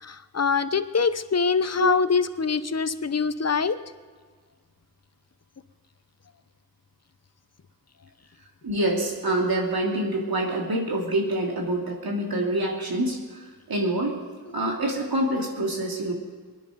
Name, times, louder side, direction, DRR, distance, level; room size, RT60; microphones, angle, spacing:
voice 1, 0.0-3.8, left 5 dB, 45° left, 13 dB, 0.9 m, -24 dB
voice 2, 8.6-13.2 13.7-14.2 14.5-16.1, right 1 dB, 75° right, -1 dB, 3.1 m, -26 dB
23.0 x 10.0 x 5.2 m, 1.5 s
wide cardioid pair, 50°, 36 cm